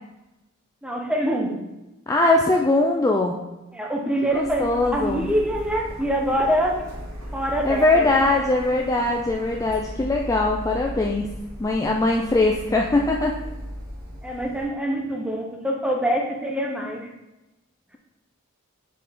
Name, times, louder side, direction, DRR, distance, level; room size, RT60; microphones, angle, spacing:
voice 1, 0.8-1.5 3.7-6.8 7.3-8.2 14.2-17.1, right 1 dB, 5° right, 0 dB, 0.8 m, -25 dB
voice 2, 2.1-3.4 4.3-5.3 7.6-11.3 11.6-13.3, left 2 dB, 15° left, 0 dB, 0.3 m, -21 dB
Printer, 4.3-14.6, equal, 75° right, 1.7 m, -37 dB
6.5 x 4.0 x 3.6 m, 0.99 s
head